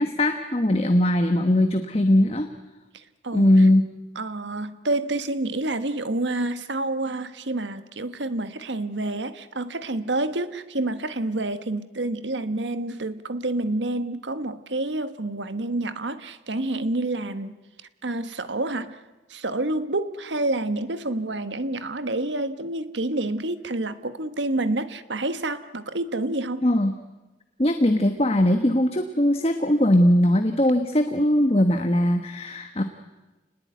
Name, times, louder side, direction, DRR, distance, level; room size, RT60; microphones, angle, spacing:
voice 1, 0.0-2.5 3.3-3.9 26.6-26.9 27.6-32.8, left 1 dB, 35° left, 1.3 m, -20 dB
voice 2, 4.2-17.5 18.0-19.0 19.3-26.6, right 2 dB, 80° right, 1.4 m, -28 dB
29.0 x 19.5 x 9.6 m
head